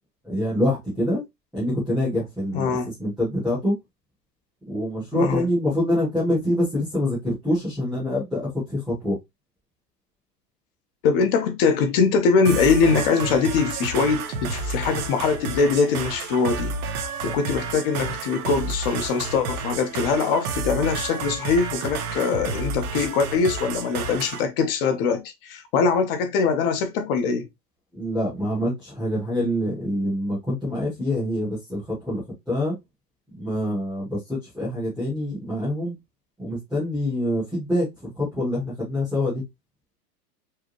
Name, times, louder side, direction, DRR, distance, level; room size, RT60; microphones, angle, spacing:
voice 1, 0.2-1.2 1.5-2.7 3.0-3.7 4.7-9.2 27.9-32.2 32.5-32.7 33.4-35.9 36.4-37.9 38.2-39.4, left 1 dB, ahead, 0.3 m, -25 dB
voice 2, 2.5-2.9 5.1-5.5 11.0-16.7 17.2-27.5, left 5 dB, 35° left, 1.0 m, -22 dB
sound 1, 12.4-24.4, right 4 dB, 65° right, 1.2 m, -31 dB
4.8 x 2.8 x 3.0 m
supercardioid pair, 155°, 49 cm